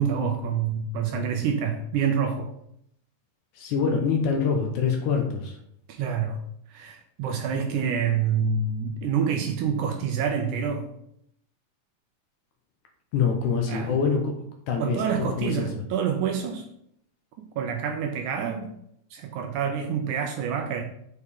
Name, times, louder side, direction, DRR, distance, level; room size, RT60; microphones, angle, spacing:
voice 1, 0.0-2.5 5.9-6.4 6.7-10.9 13.7-13.9 14.8-16.7 17.4-18.7 19.1-20.8, right 7 dB, 80° right, 1.9 m, -27 dB
voice 2, 3.6-5.6 13.1-14.3 14.7-15.7, left 5 dB, 70° left, 2.1 m, -25 dB
6.6 x 4.6 x 3.6 m
omnidirectional pair, 3.9 m